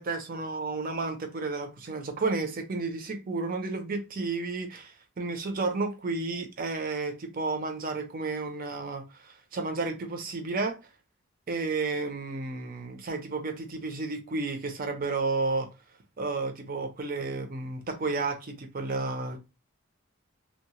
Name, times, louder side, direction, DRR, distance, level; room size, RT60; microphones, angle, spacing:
voice 1, 0.0-10.8 11.5-15.7 16.2-19.4, right 3 dB, 40° right, 0.5 m, -32 dB
2.7 x 2.0 x 2.9 m
head